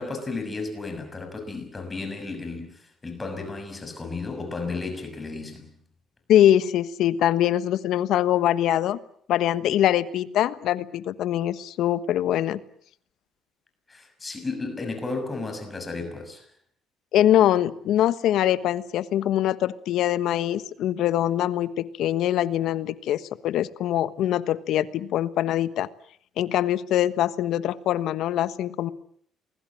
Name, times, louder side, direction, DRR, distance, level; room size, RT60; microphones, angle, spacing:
voice 1, 0.0-5.7 13.9-16.5, left 3 dB, 20° left, 6.5 m, -33 dB
voice 2, 6.3-9.0 9.3-12.6 17.1-25.9 26.4-28.9, left 12 dB, 70° left, 1.3 m, -23 dB
28.0 x 21.0 x 7.7 m
cardioid pair, 105°, 0 cm